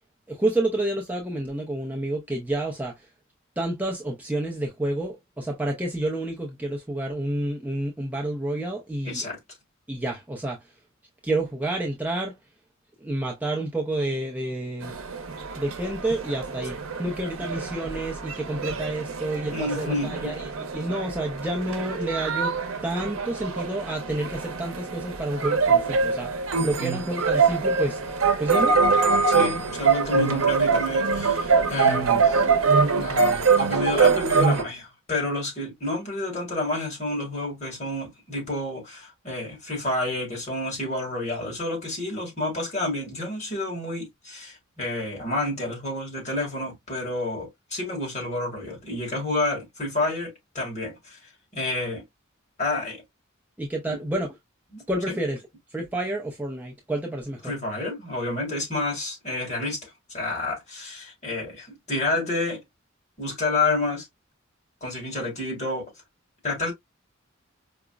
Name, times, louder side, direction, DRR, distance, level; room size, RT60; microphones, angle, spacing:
voice 1, 0.3-3.1 3.6-9.2 9.9-10.6 11.2-12.4 13.0-15.0 15.6-22.6 22.8-28.0 28.4-28.8 53.6-54.3 54.9-55.4 55.7-57.5, right 1 dB, 10° right, 0.5 m, -29 dB
voice 2, 9.0-9.4 19.5-20.5 29.3-32.5 33.0-51.2 51.5-52.0 52.6-53.0 53.9-54.0 54.7-54.8 57.4-62.6 63.2-64.1 64.8-65.9 66.4-66.7, left 2 dB, 35° left, 1.9 m, -29 dB
sound 1, 14.8-34.6, right 5 dB, 85° right, 0.7 m, -24 dB
4.9 x 2.1 x 2.3 m
head